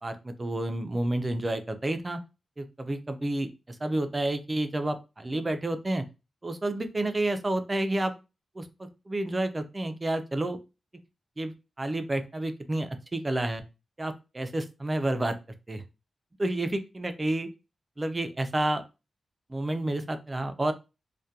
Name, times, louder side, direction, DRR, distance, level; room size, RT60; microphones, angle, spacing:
voice 1, 0.0-2.2 2.6-6.0 6.4-8.1 8.6-10.6 11.4-13.6 14.0-15.4 15.7-15.8 16.4-17.5 18.0-18.8 19.5-20.7, right 1 dB, 20° right, 9 dB, 0.3 m, -30 dB
2.2 x 2.1 x 2.7 m, 0.28 s
wide cardioid pair, 140°, 0 cm